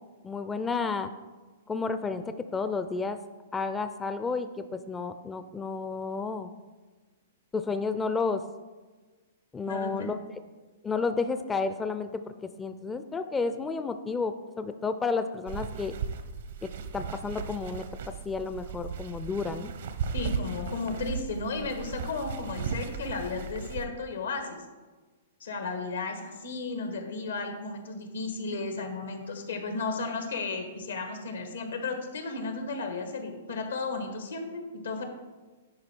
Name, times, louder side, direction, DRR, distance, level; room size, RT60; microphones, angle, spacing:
voice 1, 0.2-1.1 1.7-3.2 3.5-6.5 7.5-8.4 9.5-10.2 10.8-12.3 12.6-15.9 16.6-17.8 18.3-19.7, left 4 dB, 15° left, 9 dB, 0.4 m, -31 dB
voice 2, 9.7-10.1 20.1-24.6 25.4-35.0, left 3 dB, 85° left, 5 dB, 1.5 m, -34 dB
sound 1, 15.5-23.9, right 6 dB, 70° right, 0.7 m, -36 dB
10.5 x 4.8 x 4.5 m, 1.3 s
hypercardioid pair, 130°, 0 cm